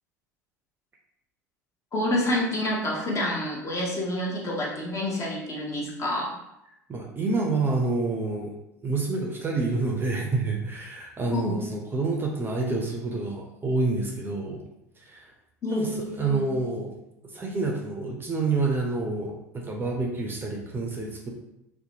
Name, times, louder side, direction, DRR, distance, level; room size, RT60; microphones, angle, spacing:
voice 1, 1.9-6.3 11.3-11.6 15.6-16.5, left 1 dB, 35° left, -3 dB, 0.8 m, -28 dB
voice 2, 6.9-8.5 8.8-14.6 15.0-15.3 15.7-16.9 17.2-21.3, right 3 dB, 25° right, 0 dB, 0.5 m, -28 dB
2.7 x 2.2 x 2.7 m, 0.85 s
hypercardioid pair, 70°, 9 cm